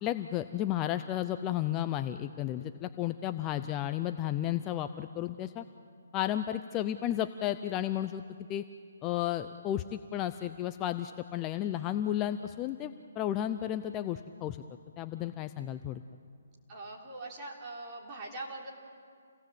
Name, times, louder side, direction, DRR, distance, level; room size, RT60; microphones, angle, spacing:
voice 1, 0.0-5.6 6.1-8.2 8.5-8.6 9.0-14.6 15.0-16.0, left 12 dB, 20° left, 9 dB, 0.5 m, -33 dB
voice 2, 16.7-18.7, right 2 dB, 25° right, -2 dB, 3.6 m, -42 dB
28.5 x 18.0 x 7.8 m, 2.2 s
hypercardioid pair, 160°, 0 cm